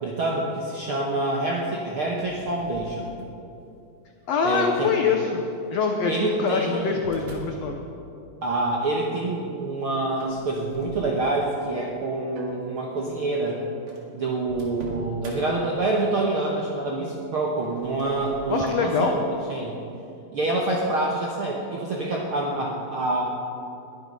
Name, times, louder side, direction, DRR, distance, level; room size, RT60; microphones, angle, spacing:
voice 1, 0.0-3.1 4.4-4.9 6.1-7.0 8.4-13.6 14.1-19.2 19.5-19.8 20.3-23.2, right 2 dB, 70° right, -2 dB, 1.3 m, -26 dB
sound 1, 2.1-3.5 4.2-4.6 5.7-7.6 10.1-11.7 12.1-12.4 13.2-13.3 13.4-13.5 13.9-15.4 17.5-18.8, right 1 dB, 45° right, 2.5 m, -43 dB
voice 2, 4.3-5.4 5.7-7.8 18.5-19.1, left 5 dB, 85° left, 3 dB, 1.4 m, -24 dB
sound 2, 12.4-16.4, right 3 dB, 85° right, 3.4 m, -43 dB
21.0 x 8.9 x 5.4 m, 2.7 s
omnidirectional pair, 4.3 m